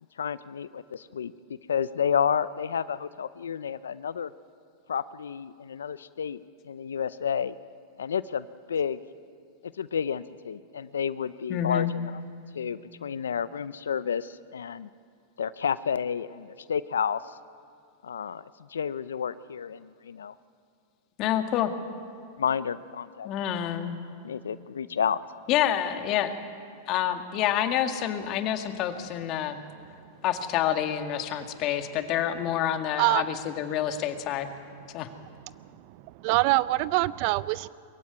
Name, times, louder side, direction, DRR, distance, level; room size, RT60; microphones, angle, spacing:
voice 1, 0.2-1.3 1.7-4.3 4.9-6.4 6.6-7.5 8.0-9.0 9.8-12.2 12.5-14.9 15.4-17.4 18.0-20.3 22.4-23.3 24.2-25.2, left 7 dB, 90° left, 16 dB, 0.5 m, -30 dB
voice 2, 11.5-11.9 21.2-21.7 23.2-24.0 25.5-26.4 26.9-29.6 30.2-34.5 34.9-35.1, left 11 dB, 45° left, 7 dB, 1.9 m, -28 dB
voice 3, 35.9-37.7, right 19 dB, 55° right, 19 dB, 0.5 m, -24 dB
22.5 x 15.0 x 9.7 m, 2.3 s
hypercardioid pair, 115°, 0 cm